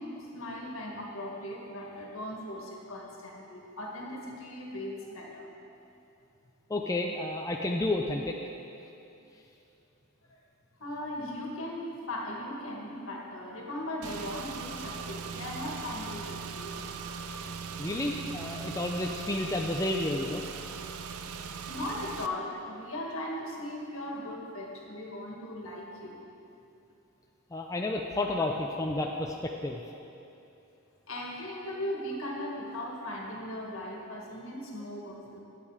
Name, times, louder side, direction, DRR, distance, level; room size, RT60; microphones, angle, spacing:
voice 1, 0.0-5.5 10.3-10.4 10.8-16.8 21.7-26.3 31.1-35.4, left 1 dB, 70° left, -1 dB, 1.8 m, -38 dB
voice 2, 6.7-8.4 17.8-20.4 27.5-29.8, left 2 dB, 15° left, 1 dB, 0.4 m, -31 dB
Car / Engine, 14.0-22.3, right 5 dB, 85° right, 0.5 m, -40 dB
12.0 x 8.5 x 4.9 m, 2.8 s
head